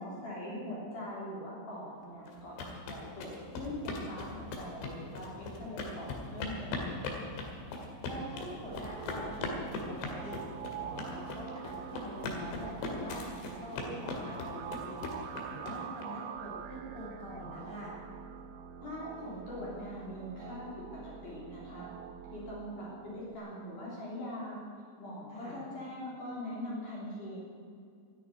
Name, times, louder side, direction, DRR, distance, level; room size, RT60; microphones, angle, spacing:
voice 1, 0.0-7.1 18.8-21.9 22.3-27.4, left 1 dB, 45° left, -6 dB, 4.6 m, -42 dB
sound 1, 2.3-16.0, left 3 dB, 65° left, 4.0 m, -39 dB
voice 2, 8.0-9.6 9.9-10.4 10.8-13.2 13.6-15.1 15.5-17.9 25.3-25.6, equal, 10° right, -5 dB, 4.1 m, -44 dB
sound 2, 8.4-23.4, right 8 dB, 85° right, 3.2 m, -45 dB
13.0 x 10.5 x 9.9 m, 2.3 s
omnidirectional pair, 5.5 m